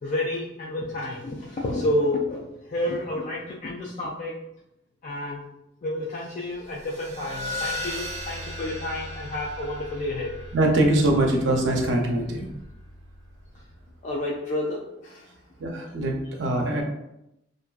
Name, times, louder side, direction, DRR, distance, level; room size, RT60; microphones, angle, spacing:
voice 1, 0.0-4.3 5.0-5.4 5.8-10.3 14.0-15.4, left 1 dB, 40° left, -4 dB, 0.3 m, -30 dB
sound 1, 6.6-13.7, left 1 dB, 40° right, 0.3 m, -37 dB
voice 2, 10.5-12.5 15.6-16.8, right 1 dB, 85° right, 0 dB, 0.5 m, -23 dB
2.5 x 2.3 x 2.2 m, 0.84 s
head